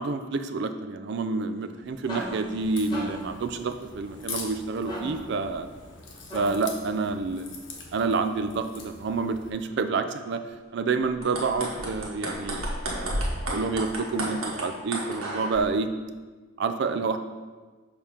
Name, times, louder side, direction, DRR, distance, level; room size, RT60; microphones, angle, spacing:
voice 1, 0.0-5.7 6.3-7.6 7.9-10.4 10.7-15.9 16.6-17.2, right 4 dB, 55° right, 9 dB, 0.4 m, -28 dB
sound 1, 1.6-6.8, equal, 20° left, 1.1 m, -40 dB
Crack, 2.6-9.5, left 4 dB, 60° left, 0.9 m, -43 dB
sound 2, 11.1-15.6, right 1 dB, 85° right, 1.3 m, -32 dB
6.8 x 2.9 x 5.4 m, 1.4 s
head